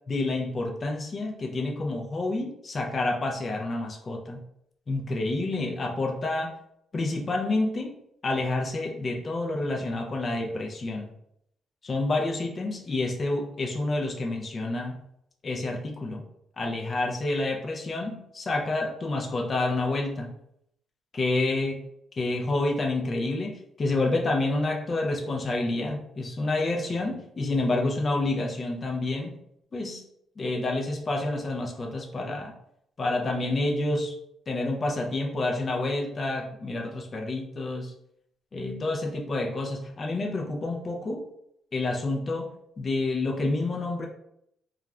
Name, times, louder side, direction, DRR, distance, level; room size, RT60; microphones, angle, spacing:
voice 1, 0.1-4.4 4.9-6.5 6.9-8.0 8.2-11.1 11.8-15.0 15.4-16.3 16.6-20.4 21.1-21.9 22.2-29.4 29.7-30.0 30.4-32.5 33.0-34.1 34.5-37.9 38.5-41.2 41.7-42.5 42.8-44.1, left 2 dB, 35° left, 1 dB, 0.5 m, -28 dB
2.4 x 2.3 x 3.1 m, 0.75 s
cardioid pair, 90°, 0 cm